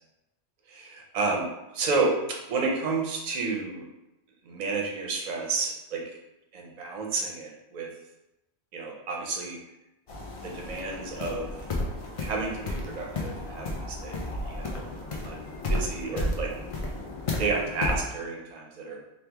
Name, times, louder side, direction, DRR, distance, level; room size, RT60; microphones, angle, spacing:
voice 1, 0.7-1.4 1.7-2.1 2.5-3.8 4.4-6.0 6.5-7.9 8.7-9.6 10.4-11.5 12.2-14.8 15.2-15.4 15.7-16.5 17.4-19.0, right 4 dB, 45° right, 0 dB, 0.6 m, -31 dB
sound 1, 10.1-18.0, left 1 dB, 55° left, 0.3 m, -33 dB
3.1 x 2.3 x 3.4 m, 0.92 s
omnidirectional pair, 1.2 m